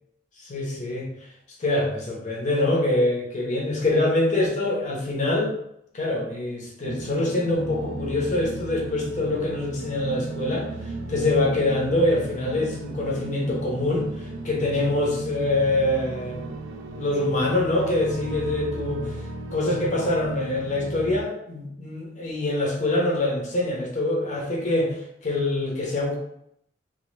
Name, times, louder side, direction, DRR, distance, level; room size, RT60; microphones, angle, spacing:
voice 1, 0.4-1.1 1.6-5.5 5.9-10.7 11.1-16.6 17.0-19.1 19.5-24.9 25.2-26.2, left 2 dB, 40° left, -2 dB, 0.6 m, -25 dB
sound 1, 6.8-21.2, right 2 dB, 90° right, 0.3 m, -36 dB
2.1 x 2.0 x 3.0 m, 0.74 s
head